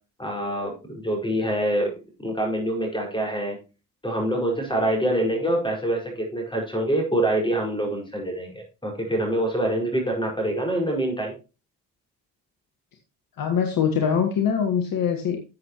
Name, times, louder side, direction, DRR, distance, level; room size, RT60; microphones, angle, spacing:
voice 1, 0.2-3.6 4.0-11.3, right 1 dB, 10° left, 1 dB, 5.3 m, -25 dB
voice 2, 13.4-15.4, left 7 dB, 50° left, 4 dB, 1.7 m, -23 dB
13.0 x 7.7 x 3.0 m, 0.31 s
hypercardioid pair, 50°, 43 cm